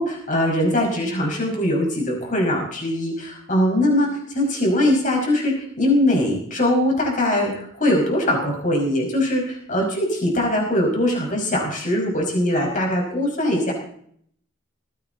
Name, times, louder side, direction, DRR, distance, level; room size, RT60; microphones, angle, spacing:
voice 1, 0.0-13.7, left 1 dB, 40° left, -1 dB, 5.2 m, -21 dB
19.5 x 15.5 x 4.0 m, 0.65 s
head